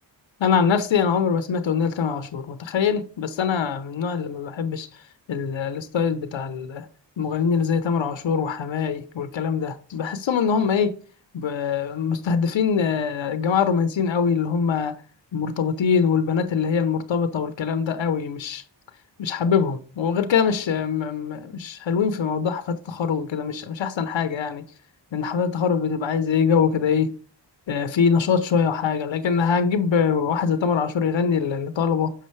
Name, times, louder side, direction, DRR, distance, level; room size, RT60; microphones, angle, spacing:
voice 1, 0.4-4.9 5.3-6.9 7.2-10.9 11.3-15.0 15.3-18.6 19.2-24.6 25.1-27.1 27.7-32.1, left 6 dB, 75° left, 0.8 m, -23 dB
6.3 x 5.5 x 3.1 m
cardioid pair, 45°, 45 cm